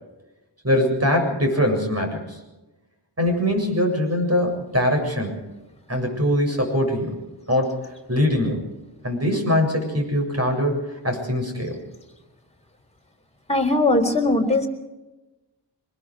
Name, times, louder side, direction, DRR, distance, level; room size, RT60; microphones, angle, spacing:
voice 1, 0.6-2.4 3.2-5.4 5.9-7.2 7.5-8.6 9.0-11.8, left 1 dB, 35° right, 2 dB, 7.4 m, -22 dB
voice 2, 13.5-14.7, left 2 dB, 15° left, 1 dB, 4.0 m, -19 dB
24.5 x 21.5 x 5.0 m, 1.1 s
wide cardioid pair, 85°, 44 cm